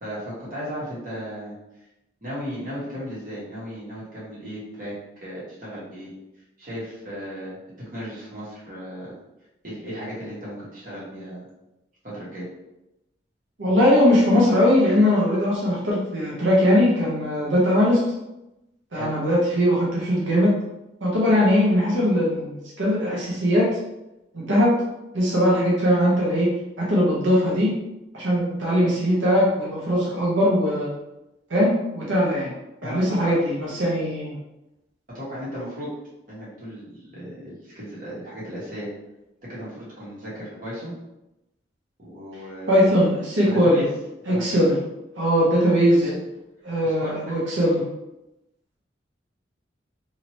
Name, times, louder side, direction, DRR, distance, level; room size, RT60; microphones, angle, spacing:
voice 1, 0.0-1.5 2.2-4.9 5.2-6.1 6.6-7.6 7.9-9.1 9.6-11.5 12.0-12.5 18.9-19.1 32.8-33.3 35.1-35.9 36.3-38.9 39.5-40.9 42.0-42.9 43.4-43.9 44.3-44.7 45.7-46.2 46.8-47.4, equal, 45° right, -9 dB, 1.4 m, -35 dB
voice 2, 13.6-18.0 18.9-20.5 21.0-23.8 24.3-24.8 25.1-26.5 26.8-27.7 28.1-30.9 31.5-32.5 32.8-34.4 42.7-43.9 44.3-44.8 45.2-46.0 46.6-47.9, equal, 90° right, -6 dB, 0.9 m, -20 dB
2.8 x 2.8 x 3.0 m, 0.93 s
head